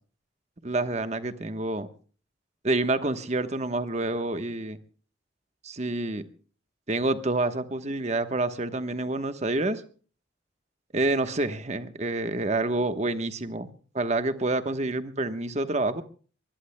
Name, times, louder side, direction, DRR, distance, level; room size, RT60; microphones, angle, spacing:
voice 1, 0.6-1.9 2.6-4.8 5.6-6.3 6.9-9.8 10.9-13.7 13.9-16.0, right 2 dB, 35° right, 10 dB, 1.1 m, -28 dB
23.5 x 20.5 x 2.2 m, 0.40 s
head